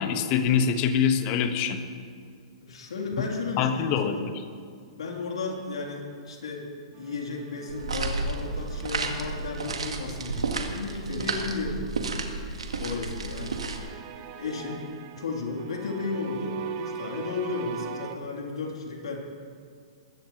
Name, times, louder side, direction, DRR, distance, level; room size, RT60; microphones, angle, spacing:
voice 1, 0.0-1.8 3.6-4.3, left 7 dB, 40° left, 8 dB, 1.3 m, -24 dB
voice 2, 2.6-4.3 5.0-6.7 7.0-12.4 12.8-13.6 14.4-14.8 15.2-19.2, left 4 dB, 75° left, -1 dB, 3.1 m, -34 dB
sound 1, 6.9-11.3 12.7-18.2, right 8 dB, 40° right, 1.1 m, -41 dB
sound 2, 7.7-13.8, right 3 dB, 80° right, 1.5 m, -32 dB
21.0 x 15.0 x 3.1 m, 2.2 s
hypercardioid pair, 115°, 3 cm